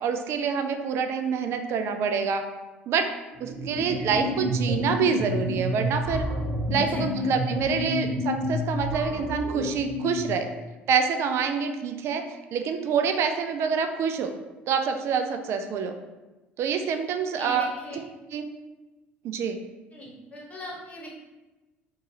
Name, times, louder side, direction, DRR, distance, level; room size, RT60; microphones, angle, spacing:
voice 1, 0.0-2.4 2.9-3.1 3.4-6.2 6.7-10.5 10.9-12.2 12.5-14.3 14.7-15.9 16.6-17.7 18.3-18.4 19.2-19.6, right 6 dB, 45° right, 6 dB, 0.3 m, -26 dB
sound 1, 3.4-10.5, left 1 dB, ahead, 0.8 m, -29 dB
voice 2, 6.9-7.4 17.3-18.0 19.9-21.1, left 1 dB, 20° left, -3 dB, 1.0 m, -40 dB
3.8 x 2.4 x 2.6 m, 1.1 s
figure-of-eight pair, 60°, 6 cm